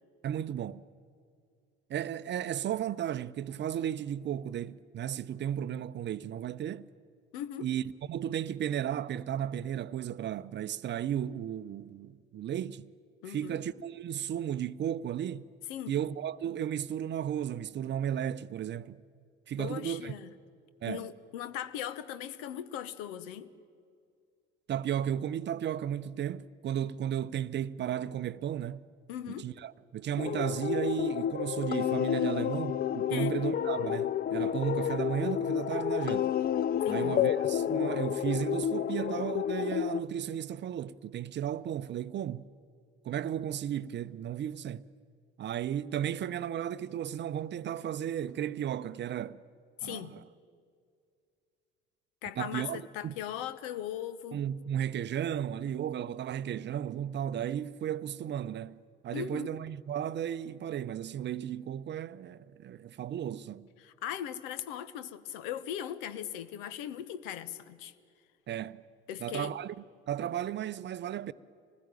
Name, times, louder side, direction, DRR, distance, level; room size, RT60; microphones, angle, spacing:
voice 1, 0.2-0.8 1.9-6.9 7.6-12.9 13.3-15.5 15.9-19.0 19.5-20.1 20.8-21.1 24.7-28.8 29.4-36.3 36.9-42.5 43.0-44.8 45.4-49.4 49.8-50.2 52.4-53.1 54.3-58.8 59.0-63.7 68.5-68.8 69.2-69.7 70.1-71.3, right 10 dB, 40° right, 0.7 m, -34 dB
voice 2, 7.3-7.7 13.2-13.6 15.7-16.0 19.6-20.3 20.9-23.5 29.1-29.5 33.1-33.4 36.8-37.2 49.8-50.1 52.2-54.5 59.1-59.5 63.8-67.9 69.1-69.5, left 10 dB, 65° left, 1.1 m, -39 dB
sound 1, 30.2-40.0, left 10 dB, 30° left, 0.6 m, -30 dB
25.5 x 20.0 x 9.1 m
figure-of-eight pair, 55°, 29 cm